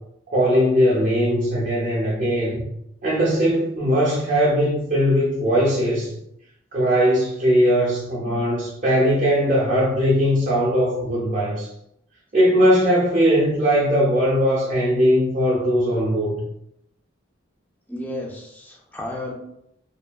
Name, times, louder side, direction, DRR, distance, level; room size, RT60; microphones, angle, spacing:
voice 1, 0.3-2.7 3.0-6.1 6.7-11.7 12.3-16.4, equal, 45° right, -6 dB, 0.6 m, -19 dB
voice 2, 17.9-19.3, left 1 dB, 10° left, -1 dB, 0.4 m, -32 dB
2.7 x 2.4 x 2.3 m, 0.77 s
head